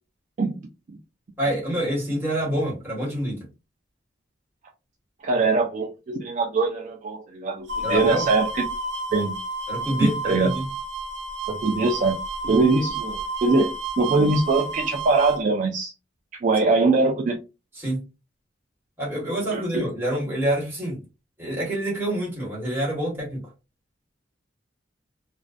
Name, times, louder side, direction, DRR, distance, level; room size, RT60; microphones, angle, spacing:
voice 1, 0.4-0.7 5.2-8.6 9.1-9.4 10.0-10.5 11.5-15.9 16.3-17.4 19.5-19.8, right 3 dB, 40° right, 0.4 m, -22 dB
voice 2, 1.4-3.5 7.8-8.3 9.7-10.7 17.8-18.0 19.0-21.0 21.4-23.4, right 1 dB, 10° right, 1.2 m, -27 dB
sound 1, 7.7-15.4, right 2 dB, 65° right, 0.7 m, -31 dB
2.5 x 2.1 x 2.4 m
head